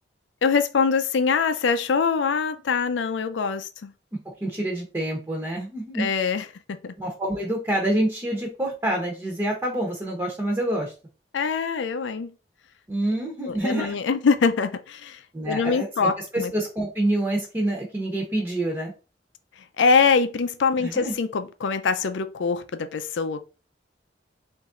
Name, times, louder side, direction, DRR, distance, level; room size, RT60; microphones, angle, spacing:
voice 1, 0.4-3.9 6.0-6.5 6.8-6.9 11.3-12.3 13.4-16.5 19.8-23.5, left 5 dB, 90° left, 0.4 m, -23 dB
voice 2, 4.4-6.1 7.0-10.9 12.9-14.0 15.3-18.9 20.8-21.1, right 1 dB, 15° right, 0.8 m, -27 dB
3.1 x 2.6 x 3.6 m
head